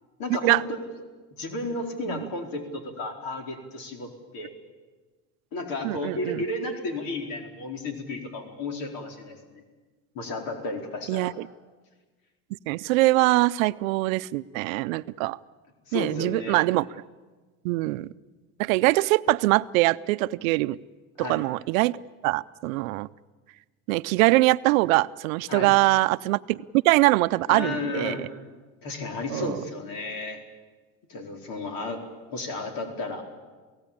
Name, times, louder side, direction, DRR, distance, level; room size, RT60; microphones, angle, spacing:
voice 1, 0.2-0.6 1.3-4.5 5.5-9.6 10.1-11.4 15.9-16.6 21.2-21.4 25.5-25.7 27.5-28.2 28.8-30.4 31.1-33.2, left 2 dB, 60° left, 4 dB, 4.4 m, -33 dB
voice 2, 5.8-6.4 11.1-11.3 12.7-15.4 15.9-16.9 17.6-18.1 18.6-20.8 21.2-22.0 22.2-23.1 23.9-28.1 29.3-29.6, right 20 dB, 90° right, 15 dB, 0.7 m, -23 dB
28.0 x 17.0 x 8.6 m, 1.3 s
supercardioid pair, 105°, 40 cm